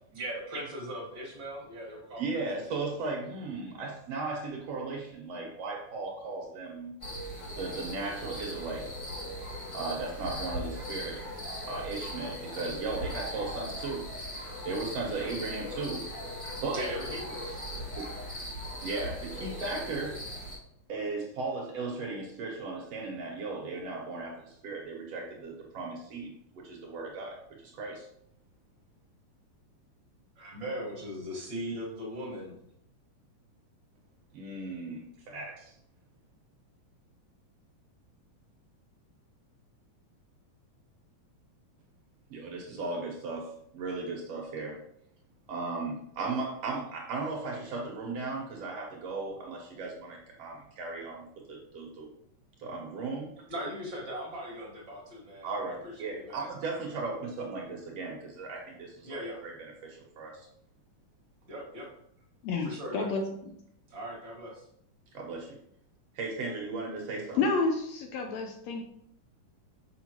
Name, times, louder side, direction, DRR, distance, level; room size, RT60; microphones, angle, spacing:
voice 1, 0.1-2.4 2.7-2.8 16.7-17.6 30.4-32.6 53.5-56.5 59.0-59.4 61.5-61.9 62.6-63.1 63.9-64.7, equal, 45° right, -3 dB, 2.0 m, -39 dB
voice 2, 2.2-6.9 7.6-8.9 9.7-11.2 11.7-14.1 14.6-16.0 16.6-16.8 18.0-18.1 18.8-20.2 20.9-28.1 34.3-35.7 42.3-44.8 45.5-52.1 52.6-53.3 55.4-59.5 59.8-60.5 62.8-63.0 65.1-65.6 66.1-67.5, right 3 dB, 60° right, -1 dB, 2.0 m, -36 dB
sound 1, 7.0-20.6, equal, 45° left, 0.4 m, -39 dB
voice 3, 62.4-63.6 67.4-68.8, left 3 dB, 75° left, 4 dB, 1.7 m, -30 dB
6.7 x 5.6 x 2.9 m, 0.69 s
omnidirectional pair, 3.5 m